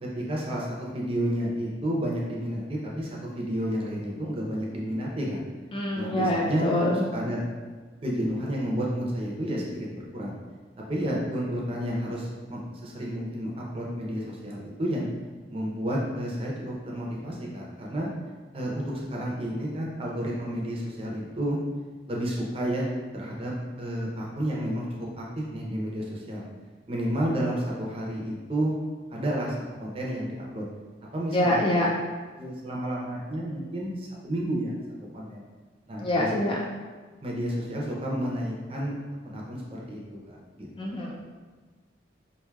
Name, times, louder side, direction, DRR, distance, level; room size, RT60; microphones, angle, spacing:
voice 1, 0.0-3.1 3.3-5.4 5.9-7.4 8.0-10.4 10.9-15.1 15.5-18.1 18.5-21.6 22.1-26.5 26.9-28.8 29.1-30.6 31.1-31.6 32.4-34.7 35.1-35.4 35.9-36.5 37.2-39.0 39.2-40.7, equal, 30° right, -3 dB, 0.6 m, -31 dB
voice 2, 5.7-7.0 31.3-31.9 36.0-36.6 40.8-41.1, left 1 dB, 25° left, -2 dB, 0.3 m, -25 dB
4.5 x 2.6 x 2.3 m, 1.4 s
head